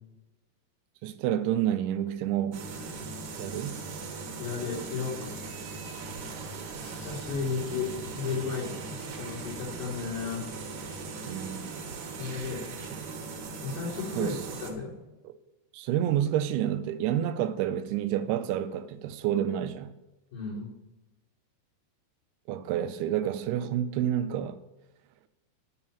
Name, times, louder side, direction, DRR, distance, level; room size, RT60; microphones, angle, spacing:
voice 1, 1.0-2.6 3.3-3.8 11.3-11.7 12.9-13.0 14.2-14.4 15.2-15.3 15.7-19.9 22.5-24.6, right 11 dB, 80° right, 2.4 m, -29 dB
sound 1, 2.5-14.7, right 4 dB, 65° right, 1.9 m, -39 dB
voice 2, 4.4-5.2 6.8-10.4 12.2-12.6 13.6-14.9 20.3-20.7, left 5 dB, 75° left, 5.1 m, -34 dB
Drum kit, 6.1-6.3 6.8-7.2 8.0-8.2 9.0-9.1 9.7-10.1 10.9-11.0 11.9-12.0 12.3-12.5 12.8-13.0 13.5-13.6, equal, 60° left, 1.7 m, -50 dB
8.7 x 5.6 x 7.1 m
omnidirectional pair, 4.8 m